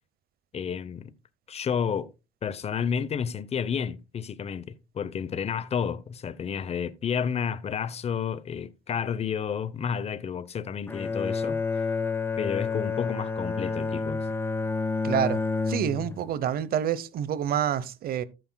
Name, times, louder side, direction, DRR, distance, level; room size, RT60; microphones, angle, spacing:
voice 1, 0.5-1.1 1.5-2.1 2.4-11.8 12.4-14.3, left 7 dB, 40° left, 0.8 m, -31 dB
Bowed string instrument, 10.9-16.3, left 4 dB, 15° left, 0.6 m, -29 dB
voice 2, 15.0-15.4 15.7-18.2, right 9 dB, 60° right, 0.9 m, -27 dB
13.5 x 9.2 x 2.3 m
cardioid pair, 110°, 17 cm